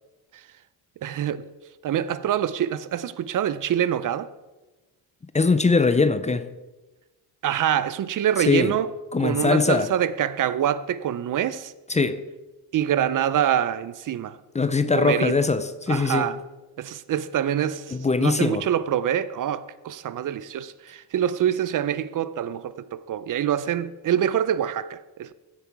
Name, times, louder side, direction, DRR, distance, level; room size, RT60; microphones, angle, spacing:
voice 1, 1.0-1.4 1.8-4.3 7.4-8.9 9.2-11.7 12.7-14.4 14.9-15.4 15.9-16.4 16.8-25.3, right 10 dB, 50° right, 0.6 m, -25 dB
voice 2, 5.3-6.5 8.5-8.7 9.1-9.9 11.9-12.2 14.5-16.3 17.9-18.7, left 4 dB, 15° left, 0.6 m, -21 dB
15.0 x 7.9 x 4.7 m
cardioid pair, 115°, 40 cm